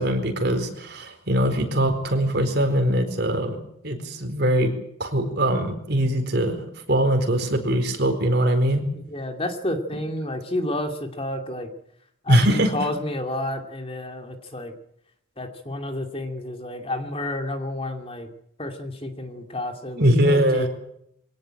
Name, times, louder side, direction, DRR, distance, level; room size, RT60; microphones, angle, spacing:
voice 1, 0.0-3.6 3.8-4.7 5.0-8.8 12.3-12.7 20.0-20.7, right 1 dB, 55° right, 6 dB, 4.4 m, -22 dB
voice 2, 9.1-11.7 12.2-14.7 15.4-18.3 18.6-20.7, left 1 dB, 30° left, 5 dB, 2.6 m, -30 dB
23.0 x 18.0 x 8.9 m, 0.74 s
head